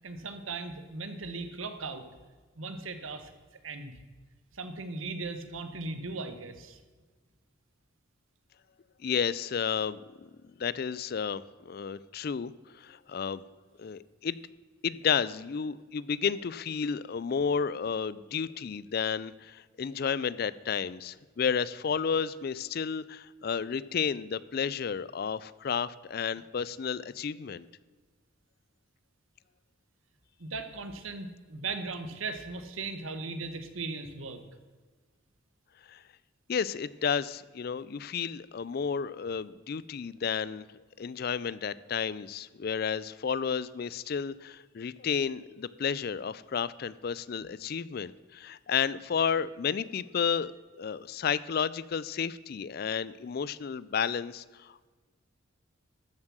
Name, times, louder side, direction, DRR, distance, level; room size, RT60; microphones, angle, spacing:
voice 1, 0.0-2.1 2.6-3.3 3.6-4.0 4.5-6.8 30.4-34.4, right 3 dB, 80° right, 9 dB, 1.2 m, -38 dB
voice 2, 9.0-10.0 10.6-13.4 13.8-14.4 14.8-27.7 35.9-36.0 36.5-40.6 41.0-50.5 50.8-54.9, left 6 dB, 50° left, 18 dB, 0.4 m, -32 dB
13.0 x 7.2 x 6.2 m, 1.4 s
head